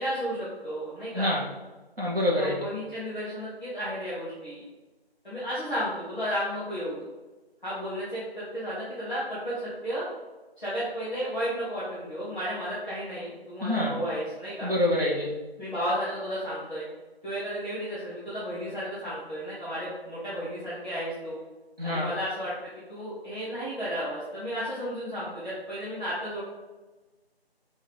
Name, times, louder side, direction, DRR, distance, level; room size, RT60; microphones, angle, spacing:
voice 1, 0.0-1.3 2.4-4.6 5.2-7.0 7.6-10.0 10.6-14.7 15.6-16.9 17.2-21.4 21.8-22.5 22.9-26.4, equal, 5° right, -12 dB, 1.1 m, -33 dB
voice 2, 2.0-2.5 13.6-13.9 14.6-15.3 21.8-22.1, left 1 dB, 60° right, -4 dB, 1.2 m, -26 dB
5.8 x 2.7 x 3.2 m, 1.2 s
figure-of-eight pair, 160°, 31 cm